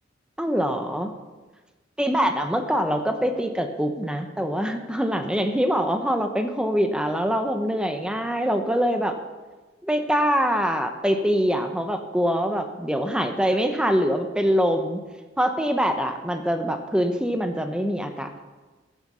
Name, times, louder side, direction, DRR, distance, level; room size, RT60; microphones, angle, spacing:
voice 1, 0.4-1.1 2.0-9.2 9.8-15.0 15.4-18.4, equal, 5° right, 6 dB, 0.8 m, -24 dB
14.5 x 8.0 x 6.2 m, 1.2 s
head